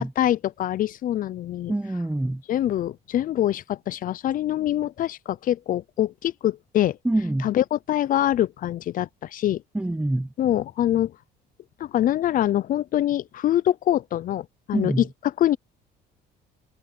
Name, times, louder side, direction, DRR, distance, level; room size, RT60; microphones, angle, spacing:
voice 1, 0.0-1.7 2.5-7.0 7.4-9.6 10.4-11.1 11.8-15.6, left 12 dB, 55° left, 0.6 m, -24 dB
voice 2, 1.7-2.4 7.0-7.5 9.7-10.3 14.7-15.0, right 1 dB, 5° right, 1.0 m, -25 dB
cardioid pair, 110°, 17 cm